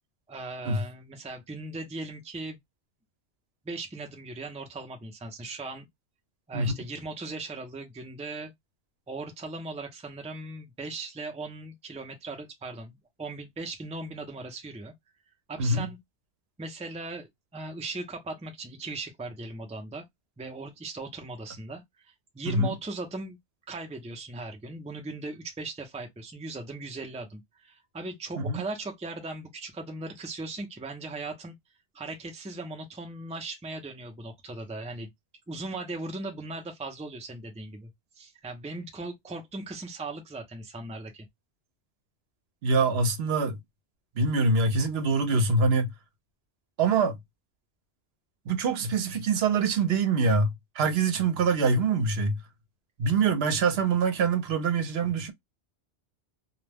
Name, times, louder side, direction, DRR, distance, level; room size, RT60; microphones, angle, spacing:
voice 1, 0.3-2.6 3.6-5.9 6.5-8.5 9.1-14.9 15.5-16.0 16.6-20.0 20.4-23.4 23.7-31.5 31.9-35.1 35.5-37.9 38.2-41.3, right 2 dB, 10° right, 0.4 m, -38 dB
voice 2, 15.6-15.9 22.5-22.8 28.4-28.6 42.6-43.6 44.2-45.9 46.8-47.2 48.5-52.4 53.0-55.3, right 4 dB, 70° right, 0.9 m, -24 dB
2.3 x 2.1 x 3.2 m
omnidirectional pair, 1.1 m